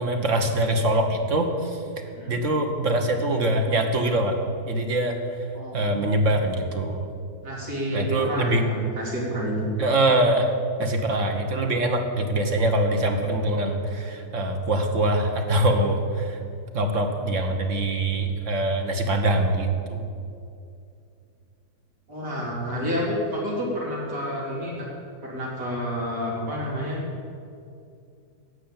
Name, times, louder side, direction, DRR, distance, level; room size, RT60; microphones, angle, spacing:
voice 1, 0.0-1.8 2.3-4.4 4.7-5.2 5.7-7.1 7.9-8.6 9.8-10.5 10.8-16.4 16.7-20.0, right 1 dB, 50° right, 5 dB, 1.5 m, -23 dB
voice 2, 2.1-2.4 5.5-6.2 7.4-9.7 22.1-24.9 25.2-27.0, equal, 90° right, -5 dB, 4.1 m, -29 dB
11.5 x 7.9 x 8.9 m, 2.5 s
omnidirectional pair, 1.8 m